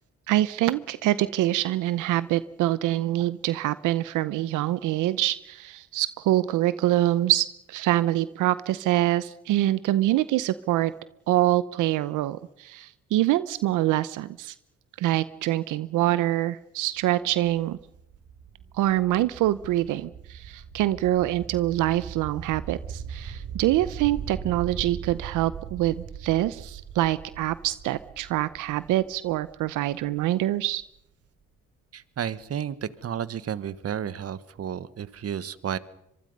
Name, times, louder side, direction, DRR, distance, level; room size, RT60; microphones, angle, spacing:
voice 1, 0.3-10.9 11.3-14.5 15.0-17.8 18.7-30.8, right 14 dB, 90° right, 16 dB, 0.8 m, -25 dB
sound 1, 17.0-30.7, right 7 dB, 70° right, 5.9 m, -40 dB
voice 2, 31.9-35.8, right 9 dB, 50° right, 16 dB, 1.3 m, -32 dB
25.5 x 23.5 x 5.4 m, 0.79 s
cardioid pair, 90°, 30 cm